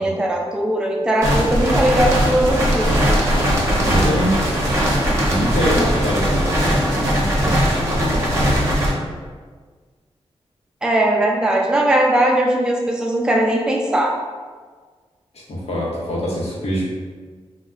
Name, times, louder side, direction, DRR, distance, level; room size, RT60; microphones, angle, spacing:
voice 1, 0.0-2.9 10.8-14.2, right 1 dB, 5° right, 0 dB, 0.3 m, -19 dB
sound 1, 1.2-8.9, equal, 25° right, 0.7 m, -19 dB
voice 2, 3.8-4.4 5.3-8.7 15.3-16.9, equal, 80° left, -4 dB, 0.7 m, -24 dB
3.2 x 2.0 x 2.3 m, 1.5 s
wide cardioid pair, 95°, 11 cm